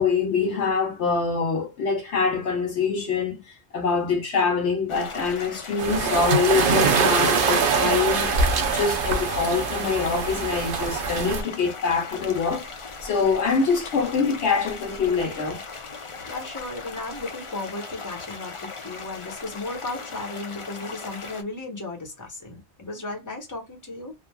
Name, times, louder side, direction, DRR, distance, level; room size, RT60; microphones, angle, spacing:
voice 1, 0.0-3.4 3.7-12.6 13.0-15.6, left 5 dB, 85° left, 1.2 m, -24 dB
sound 1, 4.9-21.4, left 4 dB, 40° left, 0.5 m, -38 dB
sound 2, 5.8-11.4, right 5 dB, 60° right, 0.7 m, -23 dB
voice 2, 16.3-24.1, left 2 dB, 15° left, 1.0 m, -35 dB
3.2 x 2.3 x 2.2 m
omnidirectional pair, 1.1 m